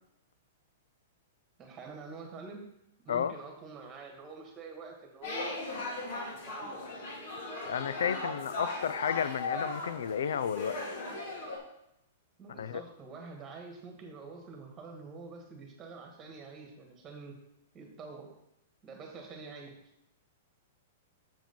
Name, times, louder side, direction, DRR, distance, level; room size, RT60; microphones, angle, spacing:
voice 1, 1.6-2.6 3.0-5.6 6.3-6.8 12.4-17.4 17.7-18.3 18.8-19.8, right 4 dB, 20° right, 2 dB, 1.6 m, -46 dB
sound 1, 5.2-11.6, left 2 dB, 60° left, 2.2 m, -38 dB
voice 2, 7.7-10.8 12.6-12.8, left 8 dB, 85° left, 15 dB, 0.4 m, -32 dB
7.5 x 5.0 x 5.3 m, 0.82 s
hypercardioid pair, 160°, 0 cm